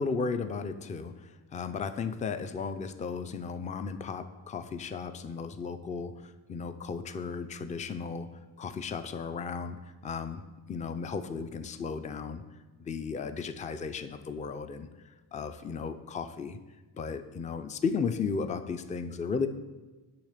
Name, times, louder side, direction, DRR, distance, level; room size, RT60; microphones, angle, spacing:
voice 1, 0.0-8.3 8.6-10.4 10.7-12.4 12.8-14.9 15.3-16.6 16.9-19.5, left 5 dB, 20° left, 10 dB, 0.4 m, -35 dB
8.8 x 3.4 x 6.5 m, 1.2 s
cardioid pair, 100°, 41 cm